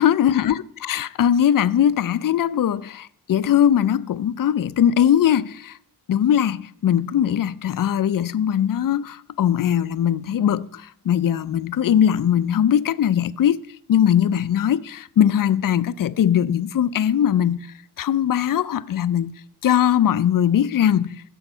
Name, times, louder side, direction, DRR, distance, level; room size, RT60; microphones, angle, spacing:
voice 1, 0.0-5.8 6.1-13.6 13.9-17.7 18.0-19.3 19.6-21.2, left 9 dB, 55° left, 0.5 m, -20 dB
14.5 x 7.2 x 5.5 m
wide cardioid pair, 150°, 41 cm